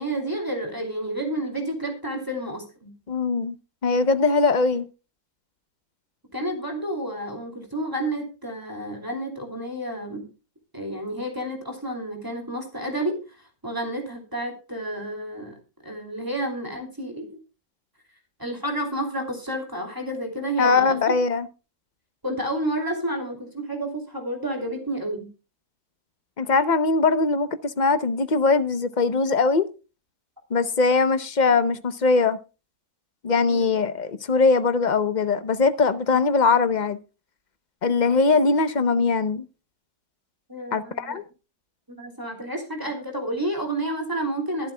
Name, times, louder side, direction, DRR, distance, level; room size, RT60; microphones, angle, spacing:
voice 1, 0.0-2.9 6.3-10.3 10.7-13.2 13.6-15.6 15.8-17.4 18.4-21.1 22.2-25.3 33.5-33.7 40.5-41.2 41.9-44.7, right 1 dB, 15° right, 2.8 m, -30 dB
voice 2, 3.1-3.5 3.8-4.9 20.6-21.5 26.4-29.7 30.5-32.4 33.2-37.0 37.8-39.4 40.7-41.2, left 4 dB, 40° left, 0.7 m, -21 dB
23.0 x 7.9 x 2.2 m
omnidirectional pair, 1.6 m